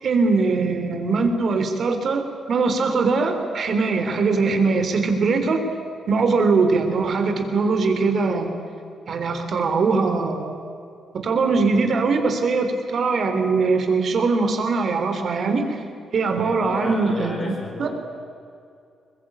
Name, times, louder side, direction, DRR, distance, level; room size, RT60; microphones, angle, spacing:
voice 1, 0.0-5.6 6.1-8.5 9.1-10.6 11.1-15.8 16.1-17.9, right 4 dB, 60° right, 6 dB, 3.6 m, -21 dB
voice 2, 16.4-17.9, left 2 dB, 45° left, -4 dB, 5.5 m, -32 dB
22.0 x 21.0 x 8.8 m, 2.5 s
cardioid pair, 70°, 0 cm